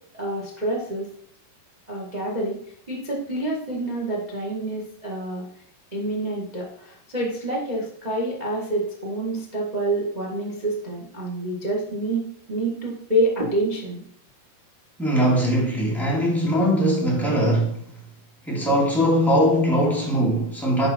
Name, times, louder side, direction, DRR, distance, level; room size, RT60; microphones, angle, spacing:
voice 1, 0.2-1.1 1.9-2.6 2.9-5.4 5.9-12.2 12.5-14.0, right 1 dB, 70° right, 0.4 m, -27 dB
voice 2, 15.0-17.8 18.4-20.9, equal, ahead, 1.3 m, -21 dB
10.5 x 5.0 x 4.4 m
omnidirectional pair, 4.4 m